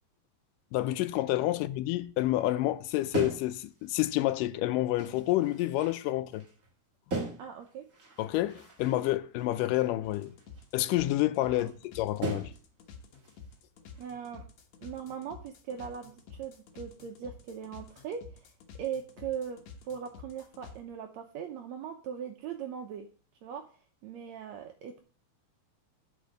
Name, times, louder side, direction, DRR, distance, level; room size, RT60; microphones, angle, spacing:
voice 1, 0.7-6.5 8.2-10.3 10.7-12.5, left 15 dB, 80° left, 2.0 m, -29 dB
sound 1, 3.1-4.6 5.0-6.7 7.1-9.1 9.4-10.7 11.0-11.1 11.7-11.8 12.2-12.8 13.1-13.6 13.9-14.4, right 2 dB, 40° right, 1.2 m, -40 dB
voice 2, 7.4-7.8 11.5-11.7 14.0-14.4 14.8-18.5 18.7-19.6 19.8-23.1 23.4-23.6 24.0-25.0, right 8 dB, 80° right, 1.6 m, -39 dB
sound 2, 10.0-20.8, left 5 dB, 60° left, 2.0 m, -50 dB
8.3 x 5.5 x 7.6 m
omnidirectional pair, 4.2 m